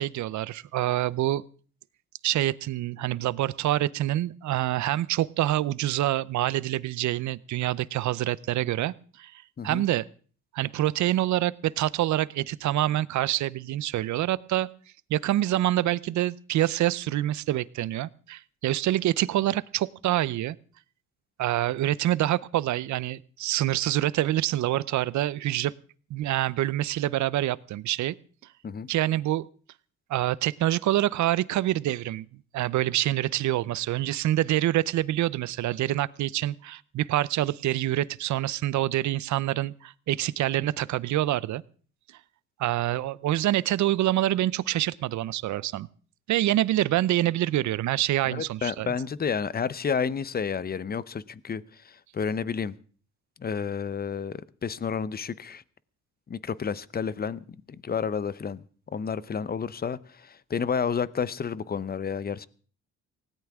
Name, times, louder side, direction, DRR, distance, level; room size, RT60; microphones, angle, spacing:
voice 1, 0.0-1.4 2.2-9.3 9.6-10.0 10.5-14.7 15.1-20.6 21.4-25.7 26.1-28.1 28.9-29.5 30.1-32.2 32.5-41.6 42.6-45.9 46.3-48.9, right 14 dB, 70° right, 0.7 m, -26 dB
voice 2, 48.3-52.7 53.4-55.6 56.3-57.4 57.8-58.6 58.9-62.5, left 6 dB, 30° left, 0.8 m, -30 dB
19.5 x 17.5 x 3.6 m
cardioid pair, 90°, 30 cm